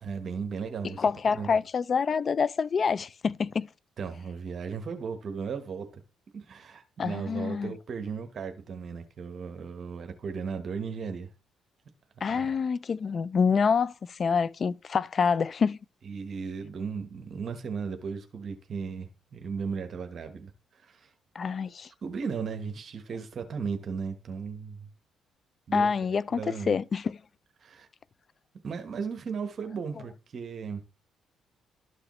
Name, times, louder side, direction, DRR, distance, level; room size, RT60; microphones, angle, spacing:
voice 1, 0.0-1.5 4.0-6.0 6.3-11.3 12.3-12.5 16.0-21.1 22.0-24.9 25.7-25.9 26.4-26.8 27.6-27.9 28.6-30.8, right 5 dB, 55° right, 1.1 m, -36 dB
voice 2, 1.0-3.7 7.0-7.7 12.2-15.8 21.4-21.9 25.7-27.2, left 5 dB, 45° left, 0.3 m, -27 dB
12.5 x 4.9 x 3.1 m
cardioid pair, 90°, 0 cm